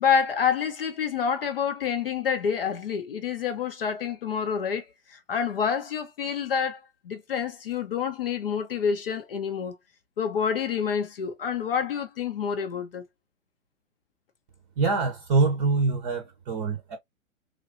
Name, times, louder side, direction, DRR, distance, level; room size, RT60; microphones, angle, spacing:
voice 1, 0.0-6.8 7.0-9.7 10.2-13.0, left 7 dB, 45° left, 0.6 m, -28 dB
voice 2, 14.8-17.0, right 4 dB, 30° right, 0.7 m, -24 dB
3.1 x 2.5 x 2.5 m
figure-of-eight pair, 115°, 41 cm